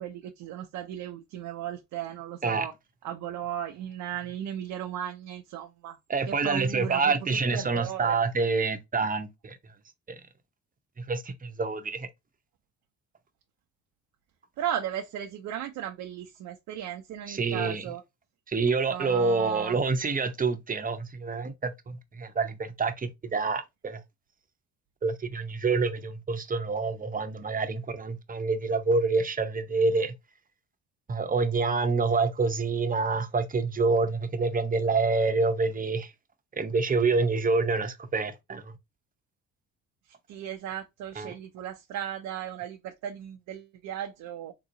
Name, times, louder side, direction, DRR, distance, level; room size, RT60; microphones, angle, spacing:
voice 1, 0.0-2.7 3.0-6.0 6.3-7.2 7.5-8.2 14.6-18.0 18.9-19.8 40.3-44.5, right 10 dB, 85° right, 0.6 m, -36 dB
voice 2, 6.1-9.6 10.1-10.2 11.0-12.1 17.3-17.8 18.5-24.0 25.0-30.1 31.1-36.1 36.5-38.7 41.2-41.3, right 4 dB, 30° right, 0.7 m, -27 dB
3.7 x 2.9 x 2.6 m
cardioid pair, 90°, 30 cm